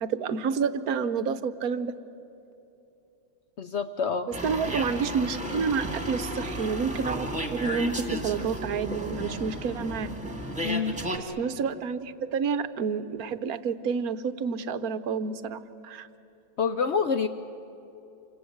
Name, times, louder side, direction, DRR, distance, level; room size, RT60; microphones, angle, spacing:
voice 1, 0.0-1.9 4.4-10.1 11.4-16.1, right 5 dB, 60° right, 12 dB, 1.1 m, -29 dB
voice 2, 3.6-4.3 10.6-11.0 16.6-17.3, left 5 dB, 90° left, 9 dB, 0.5 m, -27 dB
sound 1, 4.3-11.2, right 1 dB, 5° right, 1.9 m, -33 dB
27.5 x 25.5 x 7.9 m, 2.9 s
omnidirectional pair, 2.2 m